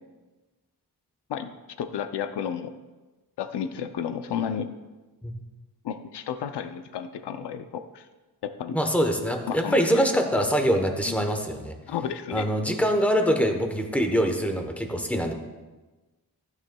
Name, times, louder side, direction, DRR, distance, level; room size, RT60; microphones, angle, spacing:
voice 1, 1.8-2.7 3.4-4.7 5.8-8.1 8.4-8.8 9.5-10.4 11.1-11.3 11.9-12.5, left 8 dB, 80° left, 9 dB, 0.6 m, -32 dB
voice 2, 8.7-11.7 12.3-15.3, equal, 5° left, 4 dB, 0.9 m, -24 dB
14.5 x 9.3 x 2.2 m, 1.2 s
wide cardioid pair, 145°, 40 cm